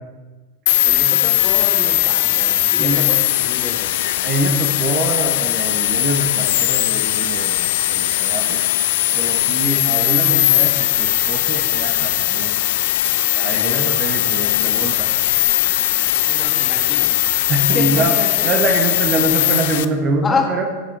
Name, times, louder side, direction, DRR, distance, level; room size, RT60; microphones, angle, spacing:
sound 1, 0.7-19.8, left 15 dB, 55° left, 0.5 m, -19 dB
voice 1, 0.8-3.9 13.6-13.9 16.3-17.1 17.7-18.5 20.2-20.5, left 4 dB, 15° left, 0 dB, 2.2 m, -28 dB
voice 2, 2.8-3.1 4.2-8.6 9.1-12.5 13.3-15.1 17.5-20.6, right 2 dB, 35° right, 3 dB, 1.4 m, -24 dB
22.0 x 7.4 x 3.5 m, 1.3 s
figure-of-eight pair, 90°, 0 cm